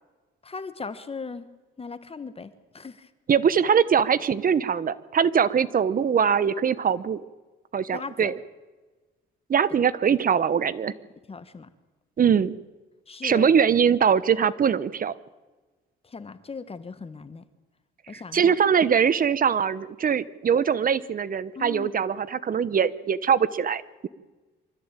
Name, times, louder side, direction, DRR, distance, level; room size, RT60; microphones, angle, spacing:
voice 1, 0.4-1.5 1.8-3.1 7.9-8.3 11.3-11.7 13.1-13.5 16.0-17.4 18.1-18.6 21.5-21.9, left 4 dB, 30° left, 12 dB, 1.4 m, -38 dB
voice 2, 3.3-7.2 7.7-8.3 9.5-10.9 12.2-12.6 13.2-15.1 18.1-24.1, right 7 dB, 45° right, 17 dB, 1.0 m, -22 dB
24.5 x 13.5 x 8.9 m, 1.3 s
cardioid pair, 90°, 20 cm